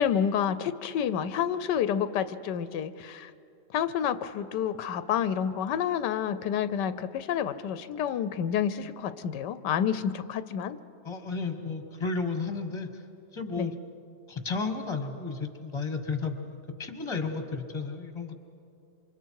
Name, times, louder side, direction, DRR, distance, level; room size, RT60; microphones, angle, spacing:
voice 1, 0.0-3.3 3.7-10.8 13.6-13.8, left 8 dB, 85° left, 13 dB, 1.3 m, -29 dB
voice 2, 11.0-12.9 13.3-13.7 14.3-18.4, left 4 dB, 20° left, 6 dB, 1.4 m, -33 dB
28.0 x 25.5 x 4.7 m, 2.5 s
omnidirectional pair, 1.8 m